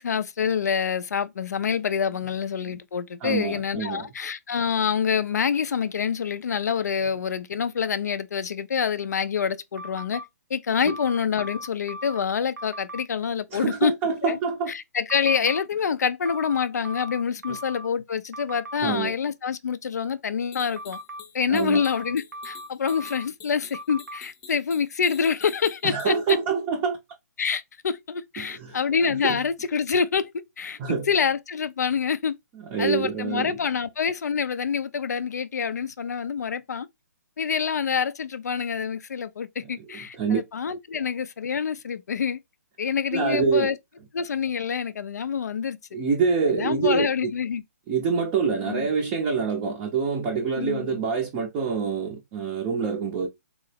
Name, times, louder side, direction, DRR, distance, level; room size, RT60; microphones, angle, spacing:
voice 1, 0.0-10.2 10.5-13.9 14.2-14.4 14.7-21.0 21.3-26.4 27.4-30.8 31.1-32.4 32.8-36.9 37.4-42.4 42.8-43.8 44.1-45.8 46.5-47.6 48.7-48.8 50.6-51.0, left 6 dB, 70° left, 0.4 m, -26 dB
voice 2, 3.2-4.1 10.8-10.9 13.5-14.7 17.5-17.6 18.8-19.1 21.5-21.8 25.8-27.0 28.4-28.8 29.1-29.4 30.8-31.1 32.7-33.6 39.9-40.4 40.9-41.0 43.1-43.7 45.9-47.3 47.9-53.3, right 5 dB, 20° right, 0.5 m, -26 dB
sound 1, 9.8-10.3 10.9-12.2 12.6-13.0 15.1-15.6 16.2-17.9 18.3-18.8 20.8-21.2 21.7-23.3 23.7-24.2, equal, 90° right, 0.4 m, -38 dB
sound 2, 20.5-26.3, left 6 dB, 25° left, 0.7 m, -47 dB
3.6 x 2.0 x 3.2 m
hypercardioid pair, 140°, 9 cm